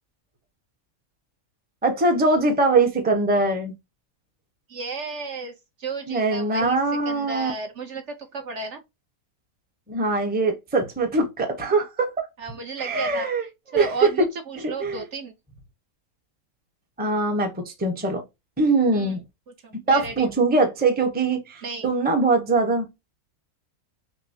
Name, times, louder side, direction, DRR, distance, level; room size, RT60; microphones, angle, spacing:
voice 1, 1.8-3.7 6.1-7.5 9.9-12.3 12.8-14.3 14.6-15.0 17.0-18.2 18.6-19.2 19.9-22.9, right 3 dB, 10° right, 0.7 m, -22 dB
voice 2, 4.7-6.8 7.0-8.8 12.4-15.3 18.9-19.2 19.6-20.3 21.6-21.9, right 4 dB, 55° right, 1.1 m, -34 dB
6.3 x 2.1 x 2.7 m
omnidirectional pair, 1.5 m